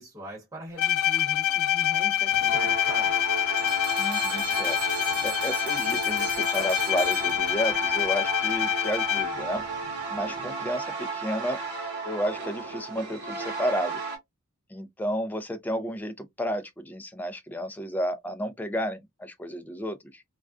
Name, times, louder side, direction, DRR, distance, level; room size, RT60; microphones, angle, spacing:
voice 1, 0.0-3.2, equal, 15° right, 1.0 m, -42 dB
Bowed string instrument, 0.8-9.5, left 12 dB, 80° left, 0.5 m, -26 dB
sound 1, 2.3-14.2, right 4 dB, 50° right, 0.9 m, -34 dB
sound 2, 3.6-7.9, right 9 dB, 80° right, 0.5 m, -39 dB
voice 2, 4.0-4.8 5.2-9.6 10.1-11.6 12.1-14.0 14.7-20.2, equal, 10° left, 0.3 m, -32 dB
2.3 x 2.2 x 2.4 m
head